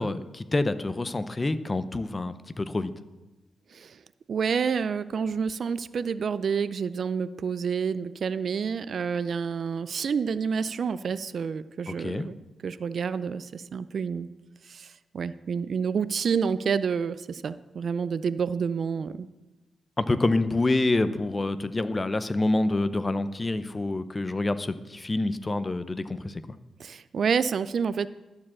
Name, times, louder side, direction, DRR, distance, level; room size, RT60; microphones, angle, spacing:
voice 1, 0.0-2.9 11.9-12.3 20.0-26.4, left 2 dB, 25° left, 13 dB, 0.5 m, -27 dB
voice 2, 4.3-12.4 12.6-14.3 14.7-19.3 26.8-28.1, right 6 dB, 60° right, 15 dB, 0.4 m, -29 dB
12.0 x 4.8 x 7.3 m, 1.1 s
cardioid pair, 100°, 0 cm